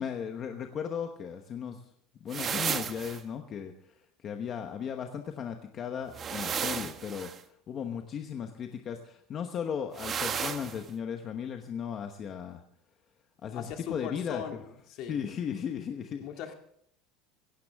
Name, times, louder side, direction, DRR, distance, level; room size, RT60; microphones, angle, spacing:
voice 1, 0.0-1.8 2.2-7.3 7.7-12.6 13.4-14.4 15.0-16.3, left 7 dB, 30° left, 5 dB, 1.0 m, -36 dB
sound 1, 2.3-3.2 6.1-7.4 10.0-10.8, right 7 dB, 25° right, 1.0 m, -33 dB
voice 2, 13.5-14.6 14.9-15.3 16.2-16.5, left 8 dB, 50° left, 5 dB, 2.0 m, -39 dB
17.5 x 16.5 x 3.5 m, 0.69 s
cardioid pair, 175°, 0 cm